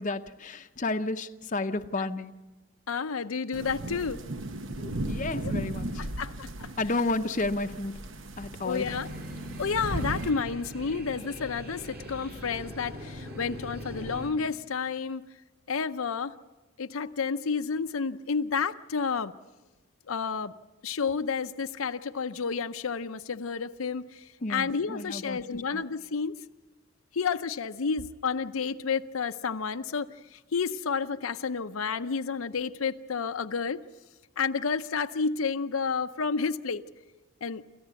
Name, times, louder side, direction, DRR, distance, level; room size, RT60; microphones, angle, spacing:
voice 1, 0.0-2.3 4.8-5.9 6.8-7.9 8.4-9.0 24.4-25.8, left 2 dB, 35° left, 8 dB, 0.7 m, -32 dB
voice 2, 2.9-4.2 5.3-5.5 6.0-6.7 8.6-9.1 9.6-15.2 15.7-16.3 16.8-19.3 20.1-20.5 20.8-26.4 27.1-33.8 34.4-36.8 37.4-37.6, left 5 dB, 80° left, 9 dB, 0.6 m, -30 dB
sound 1, 3.5-10.3, right 1 dB, 65° right, 1.0 m, -36 dB
sound 2, 8.7-14.3, equal, 45° right, 4.9 m, -41 dB
28.0 x 14.0 x 8.2 m, 1.2 s
head